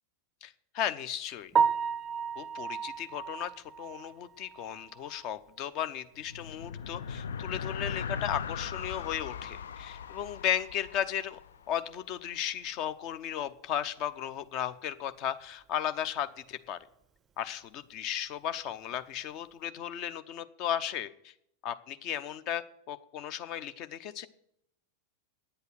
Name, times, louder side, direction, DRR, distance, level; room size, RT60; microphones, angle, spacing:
voice 1, 0.4-1.5 2.4-3.5 3.8-11.4 11.7-16.8 17.4-21.3 21.6-24.3, left 10 dB, 40° left, 12 dB, 0.7 m, -35 dB
Piano, 1.5-5.5 5.9-6.0 6.5-6.6 6.9-7.0 10.1-10.2 18.7-18.9, right 7 dB, 20° right, 0.5 m, -32 dB
sound 1, 6.1-11.9, left 6 dB, 65° left, 0.4 m, -39 dB
9.9 x 8.1 x 7.8 m, 0.75 s
figure-of-eight pair, 90°, 0 cm